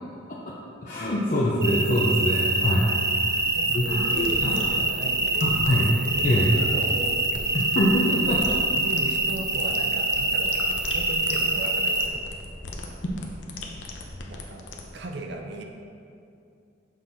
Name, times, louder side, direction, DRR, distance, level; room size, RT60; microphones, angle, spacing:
voice 1, 0.8-2.9 3.3-3.4 3.7-4.5 5.4-5.9 6.2-6.5 7.5-8.6, equal, 45° left, -5 dB, 0.6 m, -24 dB
sound 1, 1.6-12.1, right 2 dB, 15° right, 0.4 m, -25 dB
sound 2, 3.1-15.0, left 2 dB, 75° left, 0.8 m, -39 dB
voice 2, 3.3-5.5 5.9-7.6 8.3-8.4 8.7-12.2 14.3-14.7 14.9-15.6, right 2 dB, 65° right, 3 dB, 0.6 m, -37 dB
6.4 x 5.6 x 3.9 m, 2.5 s
head